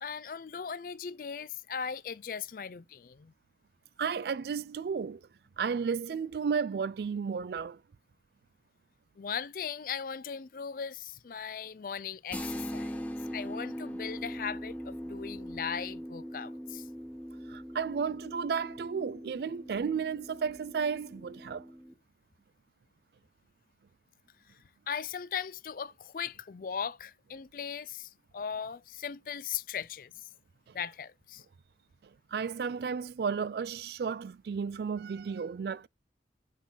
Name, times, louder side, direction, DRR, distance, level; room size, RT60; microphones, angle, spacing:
voice 1, 0.0-3.3 9.2-16.9 24.9-30.1 30.7-31.4, left 7 dB, 50° left, 0.4 m, -38 dB
voice 2, 4.0-5.3 5.6-7.8 17.5-21.7 32.3-35.9, right 6 dB, 65° right, 0.3 m, -33 dB
sound 1, 12.3-21.9, equal, 10° left, 0.8 m, -41 dB
8.2 x 3.8 x 4.1 m
head